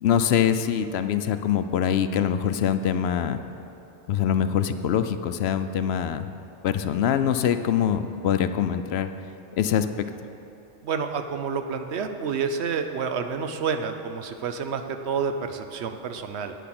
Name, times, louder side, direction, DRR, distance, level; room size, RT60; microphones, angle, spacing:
voice 1, 0.0-3.4 4.1-6.3 6.6-9.1 9.6-9.9, left 9 dB, 70° left, 10 dB, 0.8 m, -24 dB
voice 2, 10.8-16.5, right 6 dB, 75° right, 7 dB, 1.0 m, -29 dB
10.0 x 9.3 x 6.0 m, 2.9 s
omnidirectional pair, 1.1 m